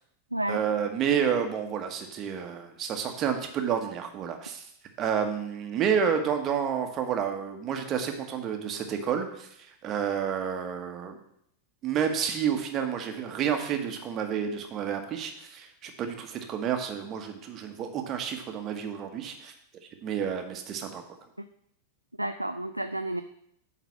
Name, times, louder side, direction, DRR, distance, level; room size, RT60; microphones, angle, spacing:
voice 1, 0.5-4.6 5.0-9.5 9.8-11.1 11.8-19.5 20.0-21.0, right 7 dB, 30° right, 5 dB, 1.2 m, -30 dB
voice 2, 22.2-23.2, right 1 dB, 85° right, 8 dB, 0.3 m, -30 dB
9.2 x 4.0 x 6.1 m, 0.73 s
figure-of-eight pair, 90°, 0 cm